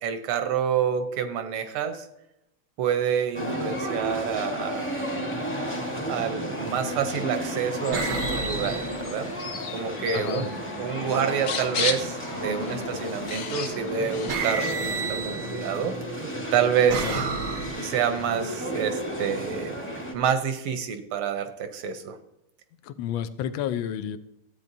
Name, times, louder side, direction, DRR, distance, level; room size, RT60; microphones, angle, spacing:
voice 1, 0.0-2.1 2.8-5.1 6.1-9.3 9.7-10.5 10.8-15.9 16.5-17.1 17.8-19.7 20.1-22.2, right 8 dB, 85° right, 8 dB, 1.8 m, -28 dB
sound 1, 3.3-20.1, equal, 10° left, 0.9 m, -33 dB
sound 2, 5.6-5.9 6.8-7.3 7.9-10.0 12.2-12.7 13.8-13.9 14.3-15.9 16.5-18.2, right 5 dB, 65° right, 0.9 m, -33 dB
sound 3, 7.8-14.7, left 5 dB, 90° left, 0.6 m, -35 dB
voice 2, 10.1-10.5 17.0-17.2 22.8-24.2, left 10 dB, 75° left, 13 dB, 1.3 m, -30 dB
13.5 x 8.5 x 2.7 m, 0.83 s
omnidirectional pair, 2.4 m